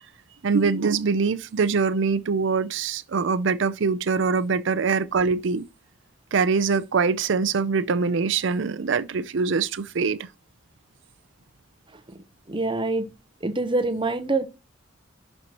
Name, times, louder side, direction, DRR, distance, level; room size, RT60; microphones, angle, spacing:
voice 1, 0.4-5.6 6.3-10.3, right 5 dB, 65° right, 0.5 m, -23 dB
voice 2, 12.5-13.1 13.4-14.5, right 2 dB, 25° right, 0.8 m, -25 dB
11.5 x 4.3 x 3.0 m
head